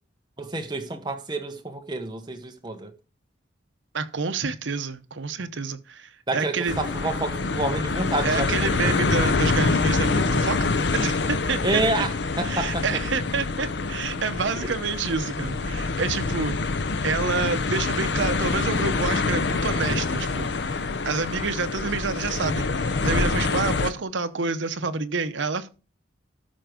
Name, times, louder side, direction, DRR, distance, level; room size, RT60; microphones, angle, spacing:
voice 1, 0.4-2.9 6.3-9.3 11.6-12.8 14.6-14.7, right 2 dB, 20° right, 1.1 m, -29 dB
voice 2, 3.9-7.1 8.2-12.0 12.4-16.6 17.0-25.7, right 4 dB, 75° right, 0.8 m, -28 dB
sound 1, 6.7-23.9, left 3 dB, 65° left, 0.7 m, -26 dB
13.0 x 4.6 x 5.1 m
head